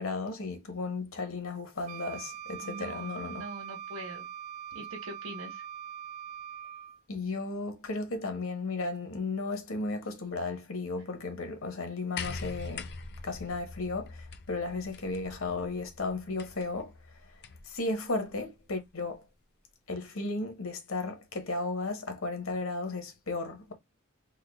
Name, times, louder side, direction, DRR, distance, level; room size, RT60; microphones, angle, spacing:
voice 1, 0.0-3.5 7.1-12.9 13.2-16.9 17.6-19.2 19.9-23.7, left 3 dB, 75° left, 1.1 m, -34 dB
Wind instrument woodwind instrument, 1.9-7.0, right 9 dB, 35° right, 0.3 m, -42 dB
voice 2, 2.6-4.3 4.7-5.6, right 1 dB, 75° right, 1.2 m, -43 dB
sound 1, 12.2-17.8 18.8-18.9, left 4 dB, 55° left, 0.6 m, -43 dB
3.6 x 2.1 x 3.5 m
head